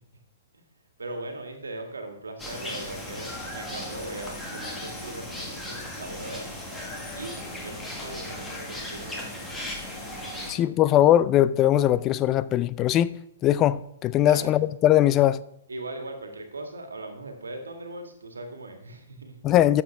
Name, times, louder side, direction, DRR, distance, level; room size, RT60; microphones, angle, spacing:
voice 1, 1.0-6.5 7.1-7.4 7.6-9.7 10.1-10.7 14.2-14.5 15.7-19.4, right 2 dB, 70° right, 1.9 m, -39 dB
sound 1, 2.4-10.5, left 1 dB, 10° left, 1.8 m, -36 dB
voice 2, 10.5-15.4 19.4-19.8, left 12 dB, 25° left, 0.4 m, -21 dB
12.5 x 7.3 x 3.5 m
figure-of-eight pair, 115°, 0 cm